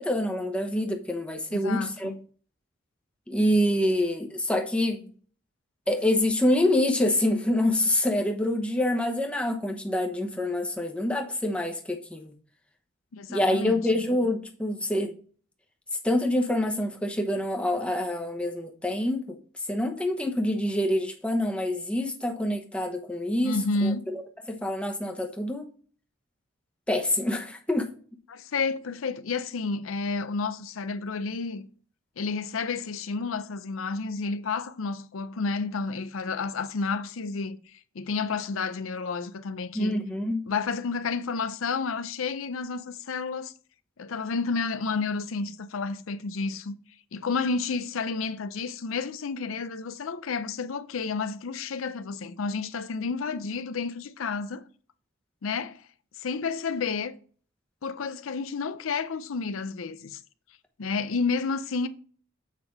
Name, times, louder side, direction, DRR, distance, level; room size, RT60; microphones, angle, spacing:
voice 1, 0.0-2.1 3.3-5.1 5.9-12.3 13.3-15.1 16.0-19.4 19.7-24.2 24.5-25.6 26.9-27.9 39.7-40.5, left 1 dB, 5° left, 1.0 m, -26 dB
voice 2, 1.5-2.2 13.1-13.8 23.4-24.1 28.3-31.7 32.2-40.0 40.5-43.5 44.0-46.8 47.1-54.6 55.4-55.8 56.1-57.1 57.8-60.2 60.8-61.9, left 4 dB, 80° left, 0.5 m, -30 dB
7.5 x 5.3 x 4.6 m
head